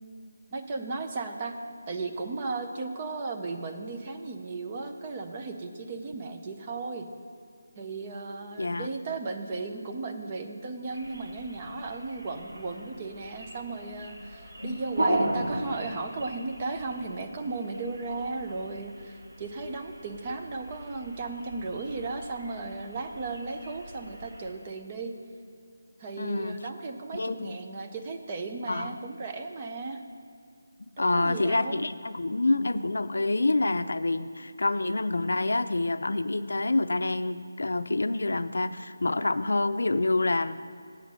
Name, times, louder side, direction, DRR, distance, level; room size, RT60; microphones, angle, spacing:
voice 1, 0.5-1.6 1.9-7.1 7.8-25.1 26.0-30.0 31.0-31.8, right 3 dB, 15° right, 5 dB, 0.4 m, -35 dB
voice 2, 8.6-8.9 14.6-15.1 26.2-26.6 27.1-27.6 28.7-28.9 31.0-40.6, left 2 dB, 70° left, 12 dB, 0.5 m, -27 dB
sound 1, 10.9-24.5, right 1 dB, 55° right, 2.1 m, -37 dB
8.2 x 8.0 x 6.2 m, 2.4 s
figure-of-eight pair, 180°, 0 cm